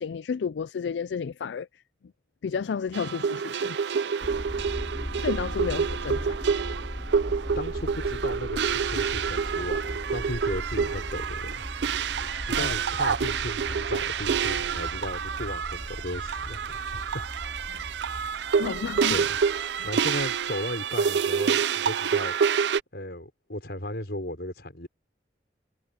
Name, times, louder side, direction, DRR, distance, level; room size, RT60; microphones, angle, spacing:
voice 1, 0.0-1.7 2.4-3.8 5.2-6.4 12.2-12.7 17.7-17.9 18.5-19.2, left 6 dB, 85° left, 0.4 m, -32 dB
sound 1, 2.9-22.8, right 6 dB, 80° right, 0.4 m, -28 dB
sound 2, 4.2-20.6, equal, 25° left, 2.9 m, -38 dB
voice 2, 7.6-11.6 12.4-17.2 19.1-19.4 19.8-22.3 22.9-24.9, left 1 dB, 65° left, 5.8 m, -35 dB
head